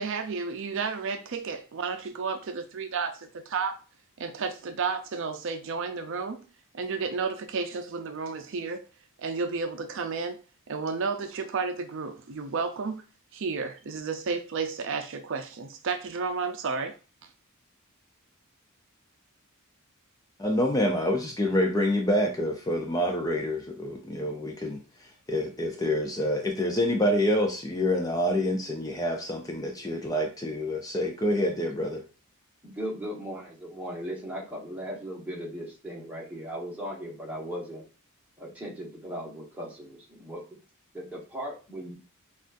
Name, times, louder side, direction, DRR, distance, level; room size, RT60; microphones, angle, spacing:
voice 1, 0.0-3.8 4.2-6.4 6.7-8.9 9.2-10.4 10.7-13.0 13.3-16.9 17.2-17.3, right 5 dB, 60° right, 0.5 m, -32 dB
voice 2, 20.4-32.0, left 1 dB, 15° left, 0.5 m, -27 dB
voice 3, 32.6-37.8 38.4-40.4 40.9-41.9, equal, 5° right, 1.2 m, -37 dB
6.1 x 2.4 x 2.5 m
head